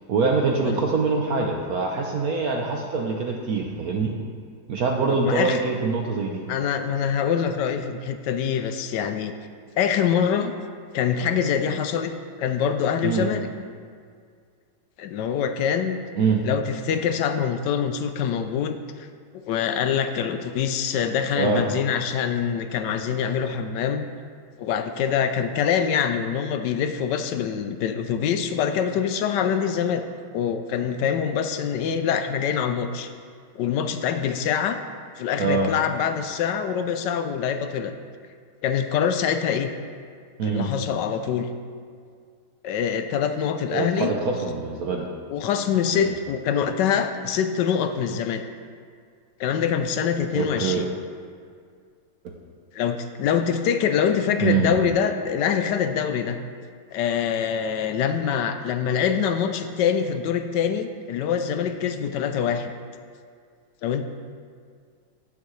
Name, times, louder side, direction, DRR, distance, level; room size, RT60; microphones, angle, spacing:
voice 1, 0.1-4.1 4.7-6.4 13.0-13.3 16.2-16.4 21.3-21.6 35.4-35.7 40.4-40.7 43.7-45.1 45.9-46.1 50.4-50.9 54.4-54.8, right 4 dB, 65° right, 1 dB, 1.0 m, -24 dB
voice 2, 5.1-5.6 6.5-9.3 9.8-10.5 10.9-13.5 15.0-16.0 16.5-19.1 19.5-24.1 24.6-30.0 30.3-33.1 33.5-34.8 35.2-37.9 38.6-39.7 40.4-41.5 42.6-44.1 45.3-48.4 49.4-50.9 52.7-56.4 56.9-62.7 63.8-64.0, left 7 dB, 75° left, 8 dB, 1.0 m, -24 dB
15.0 x 7.4 x 3.1 m, 2.1 s
omnidirectional pair, 2.2 m